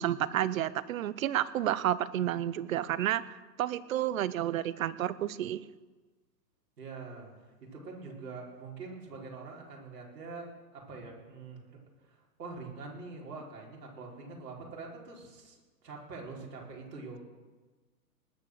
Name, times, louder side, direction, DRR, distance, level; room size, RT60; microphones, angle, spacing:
voice 1, 0.0-3.2 3.6-5.6, right 12 dB, 55° right, 18 dB, 0.7 m, -30 dB
voice 2, 6.8-17.2, right 4 dB, 70° right, -2 dB, 4.8 m, -45 dB
19.5 x 7.4 x 6.5 m, 1.3 s
hypercardioid pair, 145°, 50 cm